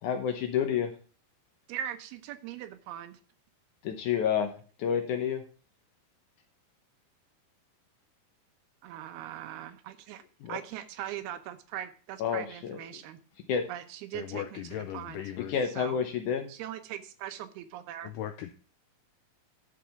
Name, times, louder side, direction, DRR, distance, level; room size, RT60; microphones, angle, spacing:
voice 1, 0.0-0.9 3.8-4.5 4.8-5.4 10.4-10.6 12.2-13.0 13.5-13.6 15.4-16.5, left 8 dB, 70° left, 5 dB, 2.0 m, -29 dB
voice 2, 1.7-3.2 8.8-10.2 10.5-13.2 13.7-15.2 15.8-16.0 16.5-18.1, right 11 dB, 85° right, 10 dB, 2.8 m, -40 dB
voice 3, 14.1-15.5 18.0-18.5, left 12 dB, 85° left, 9 dB, 1.9 m, -38 dB
11.0 x 5.0 x 5.8 m, 0.39 s
omnidirectional pair, 4.4 m